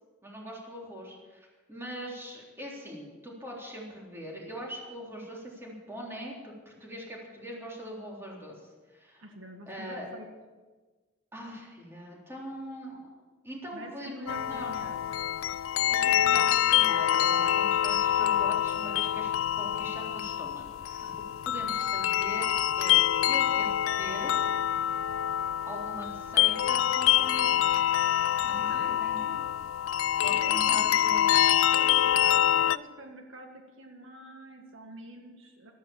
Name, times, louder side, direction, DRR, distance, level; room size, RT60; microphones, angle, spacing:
voice 1, 0.2-9.2 9.7-10.1 11.3-13.1 13.4-14.7 15.9-21.1 21.4-22.5 22.8-24.4 25.6-27.8 28.4-29.2 30.2-31.4, equal, 10° right, -2 dB, 3.6 m, -42 dB
voice 2, 9.2-10.3 13.7-15.0 15.8-16.4 28.4-29.4 30.3-30.9 31.7-35.7, right 1 dB, 75° right, 3 dB, 1.7 m, -46 dB
sound 1, 14.3-32.8, left 11 dB, 90° left, 0.4 m, -26 dB
13.5 x 13.0 x 7.1 m, 1.3 s
head